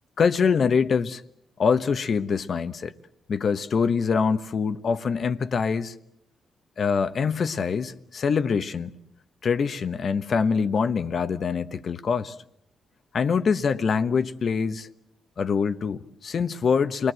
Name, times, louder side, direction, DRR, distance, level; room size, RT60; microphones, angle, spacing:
voice 1, 0.2-1.2 1.6-2.9 3.3-5.9 6.8-8.9 9.4-12.3 13.1-14.9 15.4-17.1, left 5 dB, 55° left, 1.2 m, -24 dB
28.5 x 21.0 x 7.8 m
cardioid pair, 70°, 0 cm